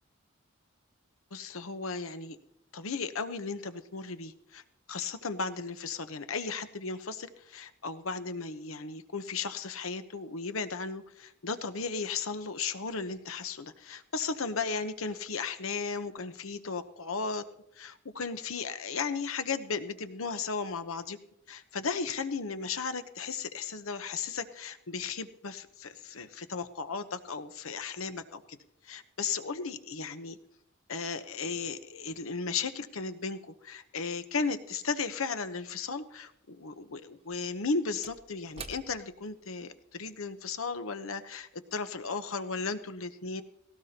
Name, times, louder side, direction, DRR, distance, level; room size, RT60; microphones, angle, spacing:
voice 1, 1.3-2.4 2.7-4.6 4.9-17.4 17.8-21.2 21.5-28.6 28.8-30.4 30.9-43.4, left 4 dB, 85° left, 10 dB, 1.0 m, -35 dB
Slam / Wood, 37.1-41.8 42.2-42.3, right 4 dB, 30° right, 0.9 m, -51 dB
18.5 x 18.0 x 2.9 m, 0.75 s
head